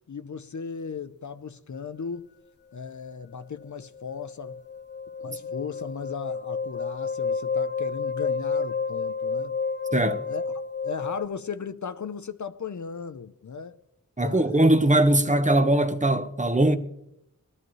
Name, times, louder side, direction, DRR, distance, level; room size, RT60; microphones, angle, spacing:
voice 1, 0.1-2.3 2.7-4.6 5.2-9.6 9.9-10.4 10.8-13.8 14.2-14.6, left 6 dB, 60° left, 0.6 m, -36 dB
sound 1, 3.6-11.2, left 5 dB, 30° left, 1.0 m, -30 dB
voice 2, 9.9-10.2 14.2-16.8, right 1 dB, 20° right, 0.9 m, -21 dB
20.5 x 13.5 x 3.1 m
wide cardioid pair, 65°, 33 cm